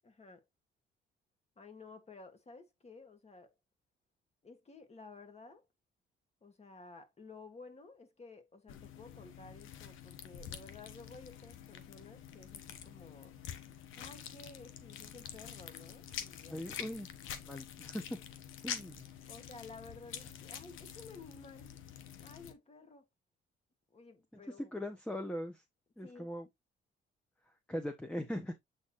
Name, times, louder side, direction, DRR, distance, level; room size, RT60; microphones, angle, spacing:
voice 1, 0.0-0.5 1.6-3.5 4.4-5.7 6.4-13.4 14.0-16.6 16.9-17.0 18.6-18.8 19.3-21.8 22.2-23.1 23.9-24.7 26.0-26.3, left 3 dB, 30° left, 2.0 m, -54 dB
sound 1, 8.7-22.5, left 9 dB, 85° left, 1.2 m, -47 dB
voice 2, 16.5-17.1 17.5-18.0 18.6-19.0 24.6-25.6 26.0-26.5 27.7-28.5, equal, 5° left, 1.1 m, -40 dB
8.0 x 4.2 x 3.1 m
cardioid pair, 90°, 20 cm